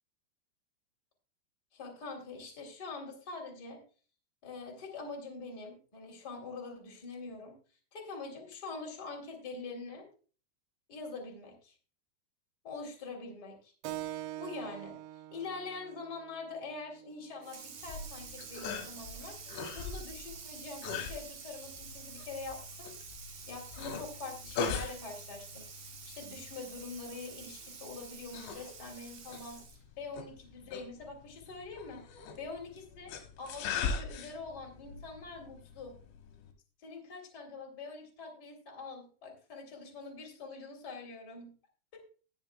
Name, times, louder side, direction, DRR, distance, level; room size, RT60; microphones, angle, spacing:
voice 1, 1.7-3.8 4.4-7.6 7.9-10.1 10.9-11.7 12.6-13.7 14.4-19.4 19.7-23.1 23.5-29.6 30.0-35.9 36.8-41.5 41.9-42.0, left 3 dB, 25° left, 1 dB, 2.6 m, -44 dB
Keyboard (musical), 13.8-18.9, right 13 dB, 85° right, 2.5 m, -45 dB
Water tap faucet / Sink (filling or washing), 17.4-29.9, right 6 dB, 55° right, 2.1 m, -49 dB
sound 1, 17.8-36.5, left 5 dB, 85° left, 4.0 m, -42 dB
20.0 x 7.0 x 2.3 m, 0.39 s
omnidirectional pair, 5.5 m